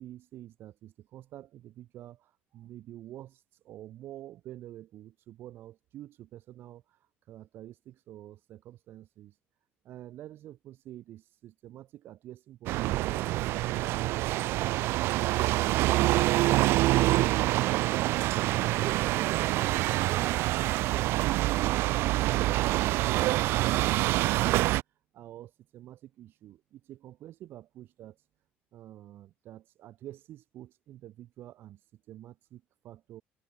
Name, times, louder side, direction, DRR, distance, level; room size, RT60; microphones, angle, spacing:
voice 1, 0.0-7.0 7.3-9.3 9.8-13.8 25.1-28.2 28.7-33.2, right 13 dB, 60° right, 6.0 m, -47 dB
sound 1, 12.7-24.8, right 18 dB, 80° right, 0.4 m, -26 dB
open air
cardioid pair, 145°, 4 cm